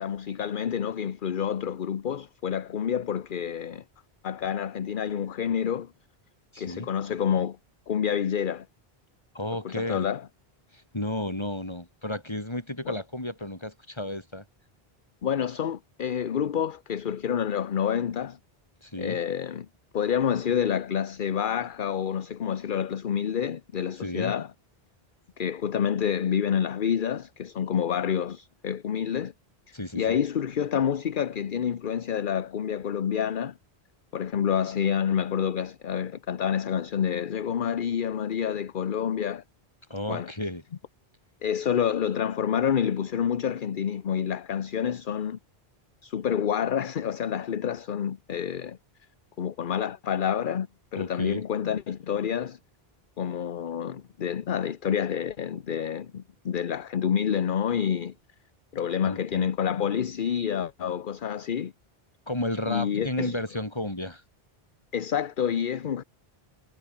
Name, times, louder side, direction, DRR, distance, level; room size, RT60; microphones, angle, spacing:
voice 1, 0.0-3.8 4.2-5.9 6.6-7.6 7.9-8.7 9.6-10.2 12.9-13.0 15.2-18.4 19.0-19.7 19.9-24.5 25.4-29.3 29.9-33.5 34.1-39.4 40.1-40.3 41.4-45.4 46.0-48.8 49.4-50.7 50.9-52.6 53.2-58.1 58.7-61.7 62.7-63.4 64.9-66.0, left 8 dB, 55° left, 0.9 m, -28 dB
voice 2, 6.5-6.9 9.3-10.1 10.7-14.4 18.8-19.2 24.0-24.3 29.7-30.2 39.9-40.6 50.9-51.4 59.0-59.5 62.3-64.2, left 1 dB, 25° left, 3.7 m, -33 dB
omnidirectional pair, 1.0 m